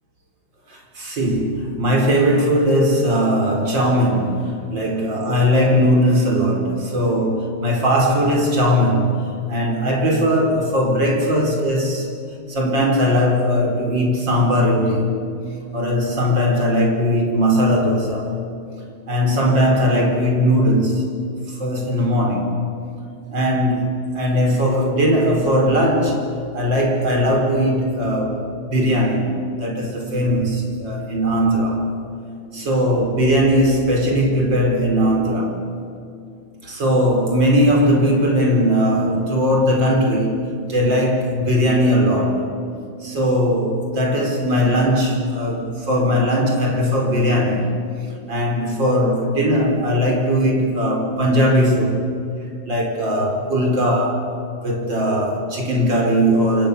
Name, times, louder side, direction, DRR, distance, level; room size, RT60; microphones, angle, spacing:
voice 1, 0.7-9.2 9.5-12.1 12.5-15.2 15.7-18.3 19.1-21.2 21.5-22.6 23.3-26.3 26.5-31.9 32.5-35.6 36.6-42.5 43.0-47.7 48.3-52.0 52.6-54.3 54.6-56.7, equal, 60° right, 5.3 m, -19 dB
29.0 x 27.5 x 7.0 m
omnidirectional pair, 2.3 m